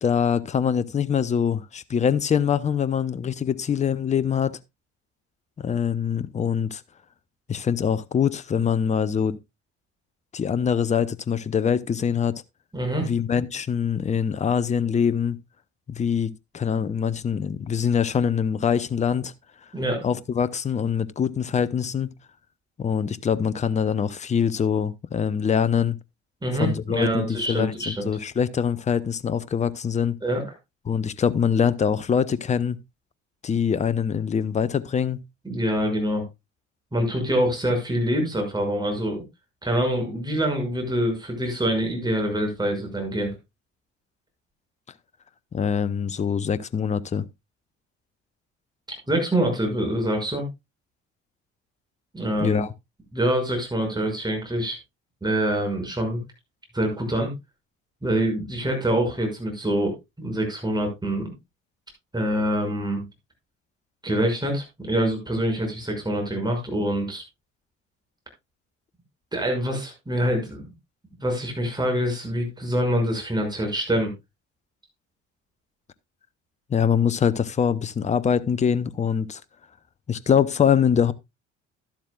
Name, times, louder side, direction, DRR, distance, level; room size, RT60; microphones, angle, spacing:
voice 1, 0.0-4.6 5.6-6.8 7.5-9.4 10.3-12.3 13.0-15.4 15.9-19.3 20.0-22.1 22.8-26.0 26.6-30.1 30.9-32.8 33.4-35.2 45.5-47.2 52.4-52.7 76.7-79.4 80.1-81.1, left 7 dB, 20° left, 0.6 m, -24 dB
voice 2, 12.7-13.1 19.7-20.0 26.4-28.1 30.2-30.4 35.4-36.2 36.9-39.2 39.6-43.3 49.1-50.4 52.1-52.6 53.1-54.8 55.2-56.2 56.7-57.3 58.0-61.3 62.1-63.0 64.0-67.2 69.3-70.7 71.2-74.1, right 1 dB, 10° right, 6.0 m, -25 dB
11.5 x 11.5 x 2.3 m
figure-of-eight pair, 55°, 37 cm